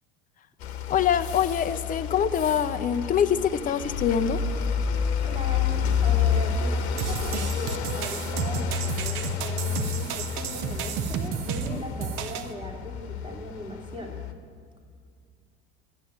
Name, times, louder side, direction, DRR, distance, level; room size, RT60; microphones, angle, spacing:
sound 1, 0.6-14.3, left 7 dB, 75° left, 1.1 m, -29 dB
voice 1, 0.9-4.4 11.7-11.8, left 8 dB, 25° left, 9 dB, 0.6 m, -24 dB
voice 2, 5.2-14.2, equal, 15° right, 0 dB, 2.7 m, -39 dB
sound 2, 7.0-12.5, right 7 dB, 55° right, 0.9 m, -32 dB
12.0 x 7.8 x 8.9 m, 2.2 s
hypercardioid pair, 65°, 33 cm